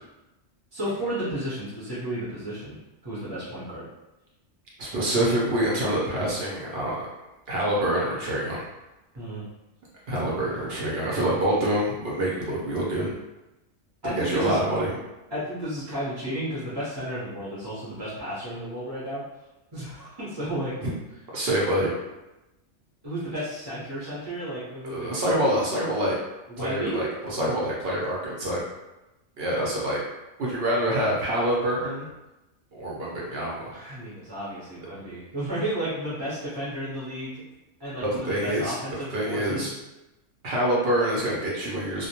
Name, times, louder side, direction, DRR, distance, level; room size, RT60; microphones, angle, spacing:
voice 1, 0.7-2.8 3.0-3.8 9.1-9.4 14.0-14.6 15.3-19.2 19.7-20.7 23.0-25.4 26.5-27.1 33.7-37.4 37.8-39.7, right 1 dB, 25° right, -10 dB, 0.6 m, -33 dB
voice 2, 4.8-7.0 7.5-8.7 10.1-13.2 14.0-14.9 20.8-20.9 21.3-21.9 24.8-26.2 26.6-28.6 29.4-30.0 30.4-32.1 32.7-33.7 38.0-38.7 39.1-39.7 40.4-42.1, right 1 dB, 60° right, -5 dB, 0.7 m, -26 dB
2.1 x 2.1 x 2.8 m, 0.99 s
omnidirectional pair, 1.3 m